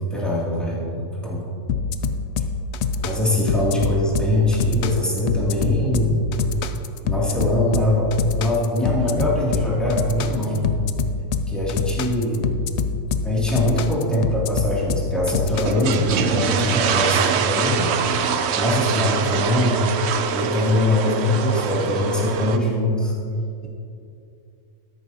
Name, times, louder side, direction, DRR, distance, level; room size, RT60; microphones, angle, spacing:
voice 1, 0.1-1.4 3.0-6.2 7.0-10.7 11.5-12.5 13.2-17.9 18.5-19.9 20.3-23.1, left 1 dB, ahead, -7 dB, 2.5 m, -22 dB
sound 1, 1.7-15.9, left 5 dB, 65° left, 0.8 m, -25 dB
sound 2, 15.5-22.6, right 7 dB, 65° right, 0.8 m, -24 dB
13.5 x 10.5 x 2.8 m, 2.5 s
omnidirectional pair, 1.4 m